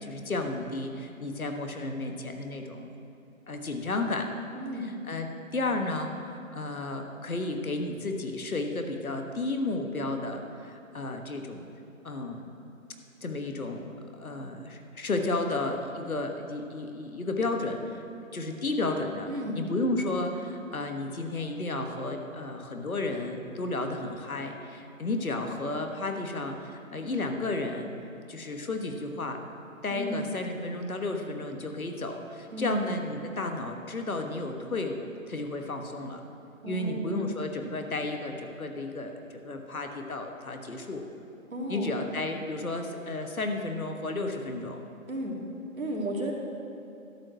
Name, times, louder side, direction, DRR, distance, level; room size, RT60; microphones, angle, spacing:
voice 1, 0.0-2.9 3.5-4.3 5.1-11.7 12.0-12.4 13.2-18.0 18.3-19.3 19.5-27.9 28.3-29.4 29.8-36.2 36.6-41.0 41.7-44.8, left 2 dB, 80° left, 4 dB, 1.4 m, -33 dB
voice 2, 4.5-4.9 19.3-19.6 29.9-30.3 32.5-32.9 36.6-37.3 41.5-41.9 45.1-45.4 45.7-46.3, equal, 70° right, -1 dB, 2.2 m, -33 dB
12.0 x 5.5 x 7.6 m, 2.9 s
figure-of-eight pair, 175°, 42 cm